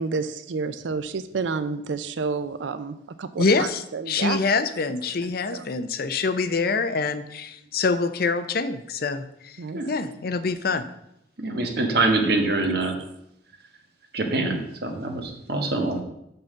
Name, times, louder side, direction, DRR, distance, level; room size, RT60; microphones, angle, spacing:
voice 1, 0.0-4.4 5.5-5.6 9.6-9.8 12.8-12.9, right 4 dB, 80° right, 12 dB, 0.5 m, -30 dB
voice 2, 3.4-9.6 9.9-10.8, left 4 dB, 55° left, 11 dB, 0.6 m, -25 dB
voice 3, 11.4-13.0 14.1-16.0, right 2 dB, 60° right, 4 dB, 1.3 m, -24 dB
5.8 x 5.4 x 6.6 m, 0.79 s
head